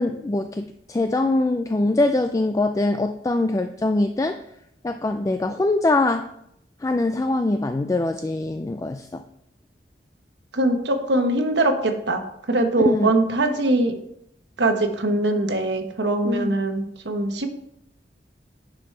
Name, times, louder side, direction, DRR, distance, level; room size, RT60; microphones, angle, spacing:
voice 1, 0.0-4.4 4.8-6.3 6.8-9.2 12.9-13.1 16.2-16.6, left 2 dB, 20° left, 7 dB, 0.3 m, -23 dB
voice 2, 10.5-13.9 14.6-17.5, right 2 dB, 80° right, 5 dB, 1.1 m, -22 dB
9.8 x 6.2 x 3.3 m, 0.76 s
head